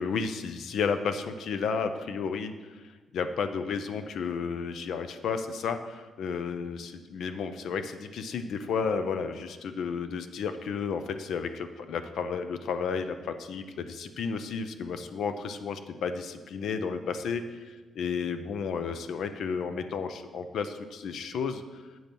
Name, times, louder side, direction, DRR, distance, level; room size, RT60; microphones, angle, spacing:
voice 1, 0.0-2.5 3.1-17.6 18.0-21.8, left 5 dB, 70° left, 9 dB, 0.6 m, -32 dB
7.8 x 5.3 x 5.8 m, 1.3 s
cardioid pair, 145°, 0 cm